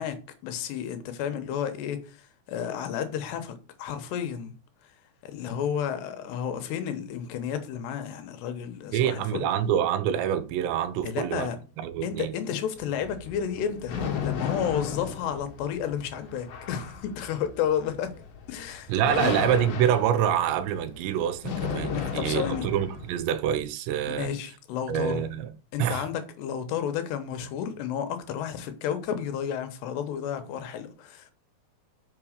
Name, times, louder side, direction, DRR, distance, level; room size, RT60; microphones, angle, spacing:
voice 1, 0.0-4.5 5.2-9.5 11.0-11.6 12.0-14.0 14.2-18.1 18.5-19.4 21.9-22.7 24.1-25.2 25.7-31.3, left 8 dB, 80° left, 3.2 m, -32 dB
voice 2, 8.9-11.5 11.8-12.4 18.9-24.3 24.9-25.5 25.8-26.1, right 9 dB, 85° right, 3.1 m, -26 dB
sound 1, 12.8-23.2, left 7 dB, 60° left, 2.8 m, -35 dB
6.7 x 6.0 x 6.5 m
omnidirectional pair, 4.9 m